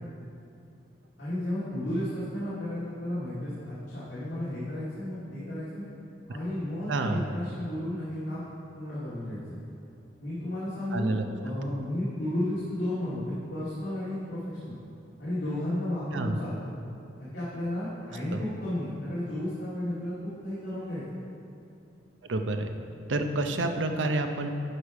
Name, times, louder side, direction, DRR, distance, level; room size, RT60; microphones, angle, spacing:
voice 1, 1.2-3.5 3.9-5.8 6.3-8.5 8.7-9.6 10.2-14.8 15.2-16.6 17.2-21.0, left 1 dB, 70° left, -11 dB, 2.2 m, -33 dB
voice 2, 6.9-7.2 10.9-11.2 16.1-16.4 18.3-18.4 22.3-22.7 23.1-24.5, right 2 dB, 80° right, 6 dB, 0.7 m, -28 dB
11.0 x 5.0 x 4.9 m, 2.6 s
head